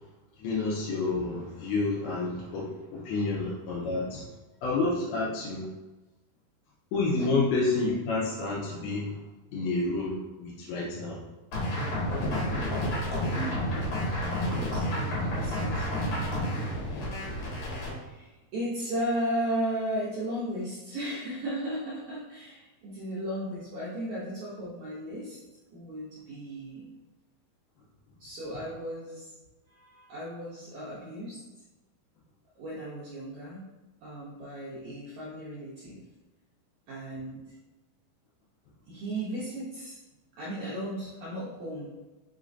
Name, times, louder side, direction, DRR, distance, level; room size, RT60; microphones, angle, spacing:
voice 1, 0.4-4.2 4.6-5.7 6.9-9.2 9.5-11.2, left 3 dB, 90° left, -5 dB, 2.6 m, -29 dB
sound 1, 11.5-17.9, equal, 70° left, 3.1 m, -30 dB
voice 2, 13.5-13.9 14.2-17.1 18.0-25.4 25.7-26.9 28.2-29.3 29.7-31.4 32.5-33.6 34.0-36.0 36.9-37.4 38.9-40.0 40.4-42.0, right 1 dB, 80° right, -7 dB, 1.6 m, -36 dB
6.2 x 3.1 x 2.6 m, 1.1 s
omnidirectional pair, 4.4 m